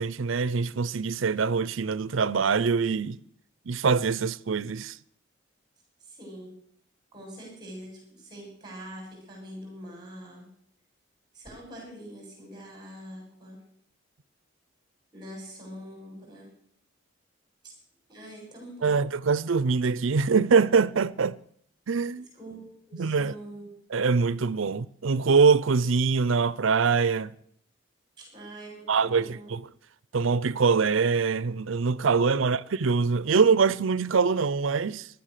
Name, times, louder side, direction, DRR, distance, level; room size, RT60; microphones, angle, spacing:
voice 1, 0.0-3.2 3.7-5.0 18.8-21.4 21.9-22.3 22.9-23.3 23.9-27.3 28.9-29.6 30.1-35.1, right 5 dB, 80° right, 0.6 m, -24 dB
voice 2, 6.0-6.5 7.1-10.5 11.3-13.6 15.1-16.5 17.6-17.7 18.1-19.0 22.3-23.7 28.2-29.5, right 1 dB, 20° right, 6.4 m, -44 dB
15.0 x 12.0 x 6.6 m
head